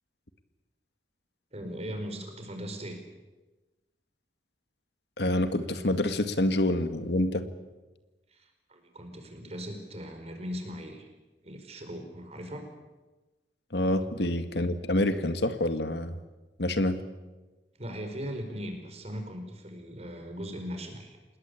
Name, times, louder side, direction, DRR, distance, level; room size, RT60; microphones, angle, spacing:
voice 1, 1.5-3.0 8.3-11.1 11.4-12.7 17.7-21.2, equal, 35° right, 6 dB, 5.0 m, -39 dB
voice 2, 5.2-7.4 13.7-16.2 16.6-17.0, left 1 dB, 70° left, 10 dB, 1.9 m, -27 dB
27.5 x 20.0 x 8.5 m, 1.1 s
head